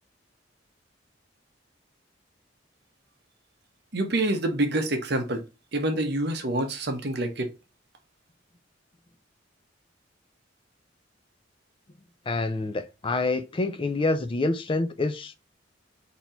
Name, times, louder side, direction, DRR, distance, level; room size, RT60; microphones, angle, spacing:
voice 1, 3.9-5.4 5.7-7.5, right 1 dB, 60° right, 1.0 m, -27 dB
voice 2, 12.3-15.3, left 2 dB, 25° left, 0.4 m, -27 dB
4.1 x 2.9 x 4.3 m
head